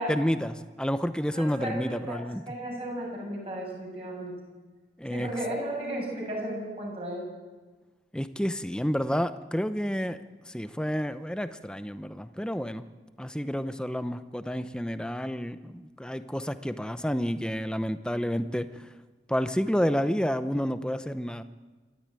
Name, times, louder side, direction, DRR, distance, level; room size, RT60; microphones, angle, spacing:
voice 1, 0.1-2.4 5.0-5.3 8.1-10.2 10.5-12.8 13.2-18.9 19.3-21.4, equal, 5° left, 11 dB, 0.7 m, -30 dB
voice 2, 1.3-4.4 5.1-7.3, right 1 dB, 35° right, -1 dB, 7.6 m, -34 dB
27.0 x 12.5 x 9.0 m, 1.3 s
head